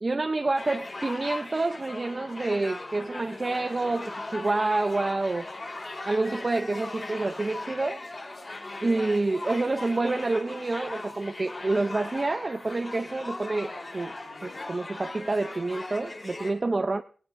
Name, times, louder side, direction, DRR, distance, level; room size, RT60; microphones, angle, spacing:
voice 1, 0.0-5.5 6.1-8.0 8.8-14.1 14.4-17.0, right 2 dB, 35° right, 7 dB, 0.5 m, -28 dB
sound 1, 0.6-16.5, left 2 dB, 35° left, 4.5 m, -39 dB
18.5 x 18.0 x 2.6 m, 0.43 s
wide cardioid pair, 90°, 0 cm